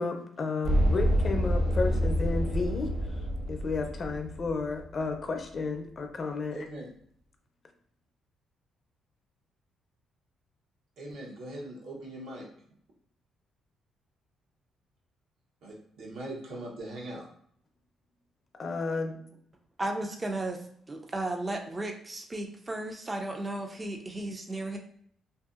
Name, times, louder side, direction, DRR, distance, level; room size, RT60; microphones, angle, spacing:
voice 1, 0.0-2.9 3.5-6.7 18.6-19.2, left 3 dB, 45° left, 4 dB, 0.5 m, -32 dB
sound 1, 0.6-4.9, equal, 60° right, 1.2 m, -27 dB
voice 2, 6.5-6.9 11.0-12.5 15.6-17.2, right 1 dB, 80° right, -3 dB, 0.9 m, -41 dB
voice 3, 19.8-20.6 20.9-24.8, right 2 dB, 25° right, 3 dB, 0.3 m, -34 dB
2.6 x 2.6 x 2.4 m, 0.64 s
cardioid pair, 90°, 0 cm